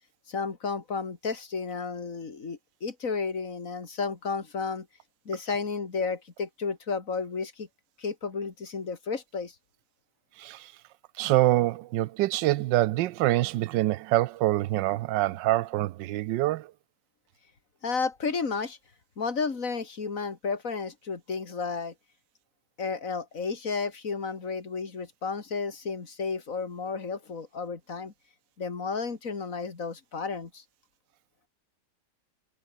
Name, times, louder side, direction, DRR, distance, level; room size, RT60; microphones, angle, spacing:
voice 1, 0.3-4.9 5.3-7.7 8.0-9.5 17.8-18.8 19.2-21.9 22.8-28.1 28.6-30.6, left 5 dB, 50° left, 2.9 m, -32 dB
voice 2, 10.4-10.7 11.2-16.7, right 16 dB, 85° right, 1.3 m, -25 dB
omnidirectional pair, 1.9 m